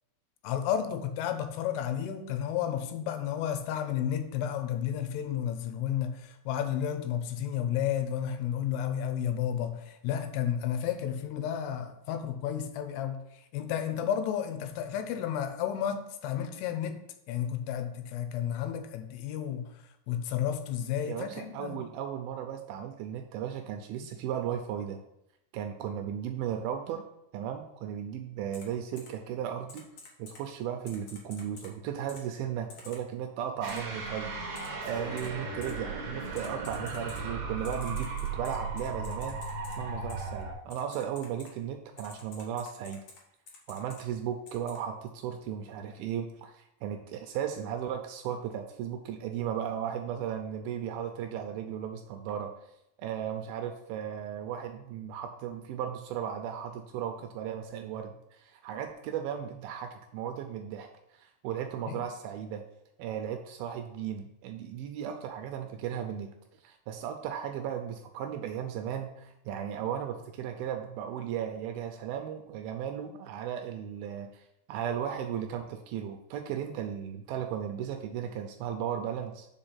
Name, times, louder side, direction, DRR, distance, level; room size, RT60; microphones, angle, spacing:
voice 1, 0.4-13.2 13.5-19.7 20.1-21.8 61.9-62.0, left 9 dB, 85° left, 9 dB, 2.8 m, -32 dB
voice 2, 21.0-25.0 25.5-27.0 27.3-29.9 30.2-39.4 39.8-43.0 43.7-52.5 53.0-60.9 61.1-62.6 63.0-66.3 66.6-74.4 74.7-79.5, right 9 dB, 80° right, 5 dB, 2.2 m, -36 dB
Typing, 28.5-28.6 29.0-29.1 29.7-30.4 30.9-31.7 32.1-32.2 32.7-33.0 33.7-33.8 34.6-34.7 35.2-35.3 35.6-35.7 36.4-37.2 37.6-39.7 40.1-40.2 40.7-41.5 42.0-43.2 43.5-44.0 44.5-44.8, left 4 dB, 70° left, 1.4 m, -49 dB
sound 1, 33.6-40.5, right 3 dB, 65° right, 1.6 m, -36 dB
5.3 x 5.1 x 5.6 m, 0.81 s
omnidirectional pair, 4.7 m